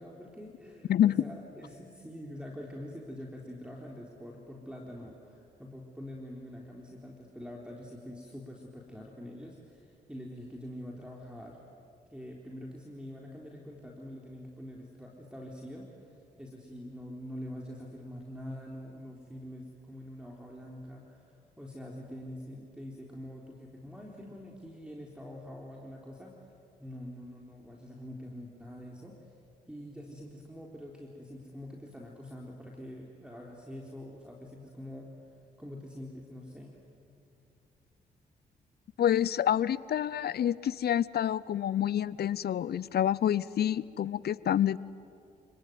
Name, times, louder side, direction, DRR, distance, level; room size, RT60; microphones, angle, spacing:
voice 1, 0.0-11.6 12.1-15.9 16.4-21.2 21.6-26.4 26.8-29.2 29.7-35.1 35.6-36.8, equal, 5° right, -1 dB, 4.1 m, -45 dB
voice 2, 0.9-1.2 39.0-44.8, left 10 dB, 65° left, 20 dB, 0.7 m, -27 dB
28.5 x 19.5 x 9.4 m, 2.6 s
supercardioid pair, 45°, 18 cm